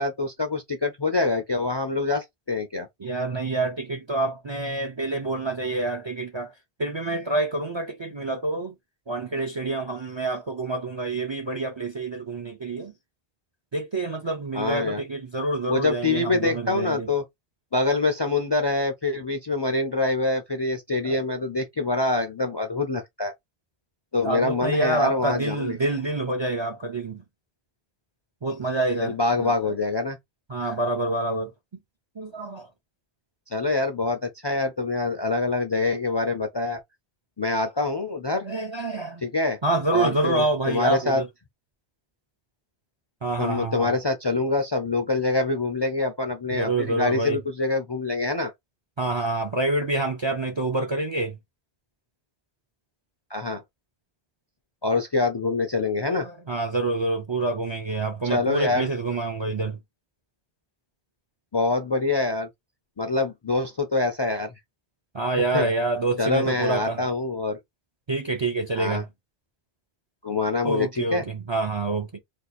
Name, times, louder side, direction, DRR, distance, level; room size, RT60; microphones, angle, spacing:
voice 1, 0.0-2.9 14.5-15.0 15.7-17.2 17.7-23.3 24.1-25.7 29.0-30.2 33.5-36.8 37.4-38.5 39.2-39.6 39.9-41.2 43.4-48.5 53.3-53.6 54.8-56.3 58.2-58.9 61.5-62.5 63.0-64.5 65.5-65.7 66.2-67.6 68.8-69.0 70.2-71.2, left 3 dB, 40° left, 0.4 m, -25 dB
voice 2, 3.0-6.5 6.8-8.8 9.1-12.9 13.7-17.1 21.0-21.2 24.2-27.2 28.4-29.5 30.5-31.5 32.2-32.7 38.4-39.2 39.6-41.3 43.2-43.9 46.5-47.4 49.0-51.4 56.1-59.8 65.1-67.0 68.1-69.1 70.6-72.2, right 2 dB, 40° right, 0.4 m, -27 dB
2.6 x 2.4 x 4.0 m
omnidirectional pair, 1.0 m